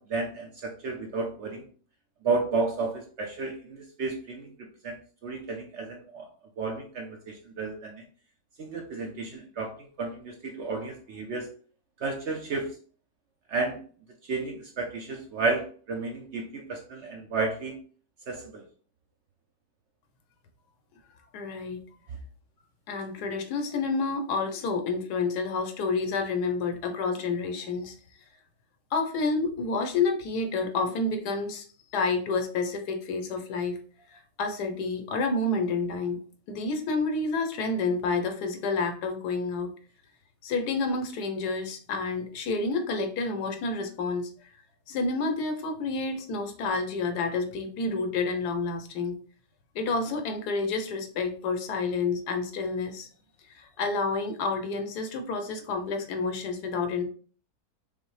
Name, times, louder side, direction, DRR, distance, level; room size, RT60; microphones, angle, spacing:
voice 1, 0.0-1.7 2.2-4.5 4.8-5.0 5.2-6.3 6.6-8.0 8.6-9.7 10.0-11.5 12.0-12.7 13.5-13.8 14.3-17.8 18.3-18.6, right 3 dB, 65° right, 2 dB, 0.7 m, -32 dB
voice 2, 21.3-21.8 22.9-27.9 28.9-31.6 31.9-33.8 34.1-36.2 36.5-39.7 40.4-44.3 44.9-49.1 49.7-53.1 53.5-57.0, left 3 dB, 90° left, 6 dB, 1.3 m, -29 dB
5.3 x 2.1 x 3.1 m, 0.42 s
omnidirectional pair, 1.7 m